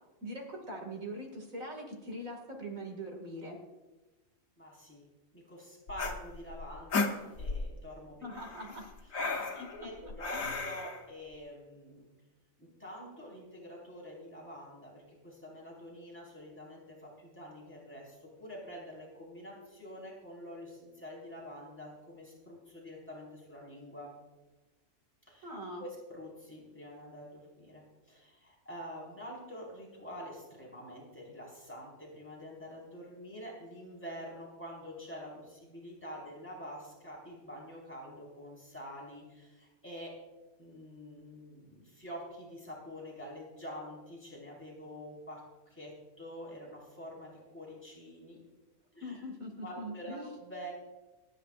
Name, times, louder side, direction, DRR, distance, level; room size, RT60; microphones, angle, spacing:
voice 1, 0.2-3.6 8.2-8.9 9.5-10.5 25.4-25.8 49.0-50.3, equal, 80° right, 2 dB, 2.7 m, -42 dB
voice 2, 4.6-5.1 5.3-8.3 9.3-12.0 12.6-24.1 25.3-25.5 25.8-40.1 40.6-48.4 48.9-49.2 49.6-50.7, equal, 10° left, -4 dB, 4.9 m, -47 dB
sound 1, 5.9-7.7 8.3-11.0, left 3 dB, 75° left, 1.6 m, -35 dB
28.5 x 9.9 x 2.5 m, 1.1 s
omnidirectional pair, 1.4 m